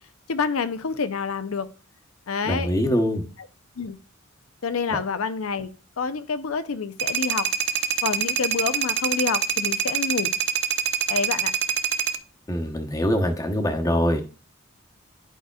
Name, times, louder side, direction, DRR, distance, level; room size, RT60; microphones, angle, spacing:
voice 1, 0.3-1.7 2.3-2.7 3.8-4.0 4.6-5.7 6.0-7.5 8.0-10.3 11.1-11.5, left 5 dB, 90° left, 0.6 m, -27 dB
voice 2, 2.4-3.2 4.9-5.0 12.5-14.2, equal, 15° left, 0.9 m, -23 dB
sound 1, 7.0-12.2, right 8 dB, 55° right, 0.5 m, -25 dB
10.5 x 4.9 x 2.3 m
head